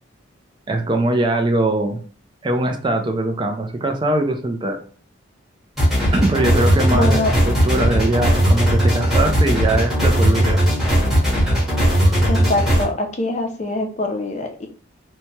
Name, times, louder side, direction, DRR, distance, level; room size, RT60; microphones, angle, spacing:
voice 1, 0.7-2.0 2.4-4.8 6.1-10.6, right 2 dB, 25° right, 4 dB, 0.3 m, -21 dB
sound 1, 5.8-12.8, equal, ahead, 0.9 m, -17 dB
voice 2, 6.9-7.3 12.3-14.7, left 2 dB, 35° left, 3 dB, 0.5 m, -23 dB
3.0 x 2.2 x 2.8 m, 0.41 s
head